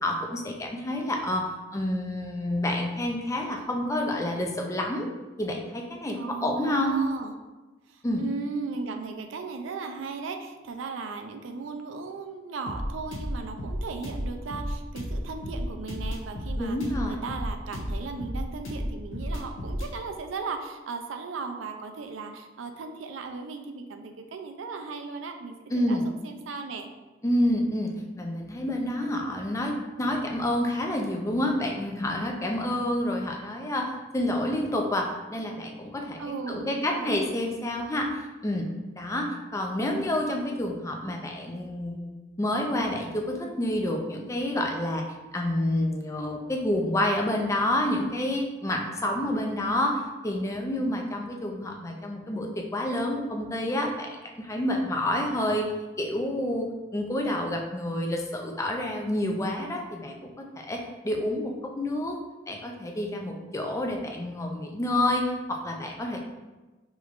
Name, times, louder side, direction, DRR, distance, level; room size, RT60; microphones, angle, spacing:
voice 1, 0.0-5.1 5.4-7.1 8.0-8.2 16.6-17.2 25.7-26.0 27.2-36.2 36.5-38.7 38.9-42.1 42.4-45.0 45.3-55.7 56.0-62.2 62.5-66.2, left 1 dB, 15° left, 1 dB, 0.4 m, -28 dB
voice 2, 6.1-7.4 7.9-16.8 17.1-26.9 36.2-37.2, right 4 dB, 75° right, 6 dB, 0.4 m, -37 dB
sound 1, 12.6-19.9, equal, 80° left, 0.7 m, -33 dB
5.0 x 3.1 x 2.4 m, 1.2 s
head